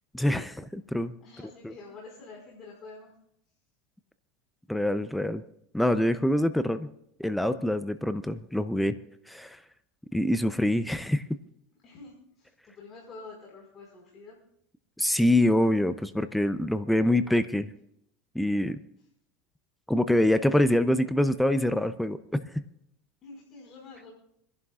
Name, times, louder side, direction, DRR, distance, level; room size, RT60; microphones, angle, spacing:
voice 1, 0.1-1.1 1.6-1.7 4.7-5.4 5.7-6.9 7.2-9.0 9.3-9.6 10.1-11.2 15.0-17.7 18.3-18.8 19.9-22.5, left 1 dB, 5° left, 11 dB, 0.6 m, -25 dB
voice 2, 1.2-3.1 11.8-14.4 23.2-24.1, left 3 dB, 40° left, -3 dB, 5.0 m, -47 dB
29.0 x 11.0 x 2.4 m, 0.74 s
supercardioid pair, 120°, 0 cm